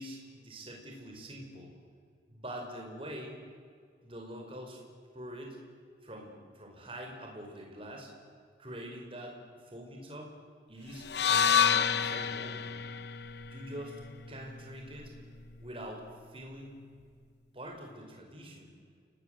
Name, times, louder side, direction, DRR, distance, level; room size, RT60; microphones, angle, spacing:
voice 1, 0.0-1.7 2.3-3.5 4.0-4.8 5.1-5.6 6.0-8.1 8.6-9.4 9.6-10.3 10.7-12.7 13.4-14.0 14.3-15.1 15.6-16.7 17.5-18.7, equal, 30° right, 0 dB, 5.0 m, -45 dB
sound 1, 11.0-15.2, left 7 dB, 60° left, 0.9 m, -29 dB
29.0 x 19.0 x 7.9 m, 2.1 s
head